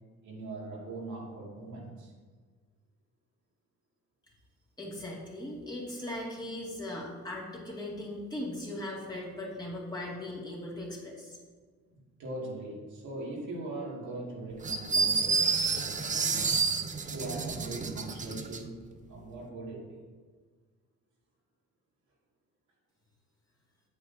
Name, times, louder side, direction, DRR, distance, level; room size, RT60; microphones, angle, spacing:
voice 1, 0.2-2.1 12.2-16.6 17.1-20.0, right 2 dB, 75° right, -4 dB, 2.3 m, -41 dB
voice 2, 4.8-11.4, left 1 dB, 15° left, -5 dB, 2.1 m, -39 dB
sound 1, 14.6-18.6, right 5 dB, 25° right, 0.5 m, -29 dB
8.0 x 7.7 x 2.8 m, 1.5 s
cardioid pair, 90°, 30 cm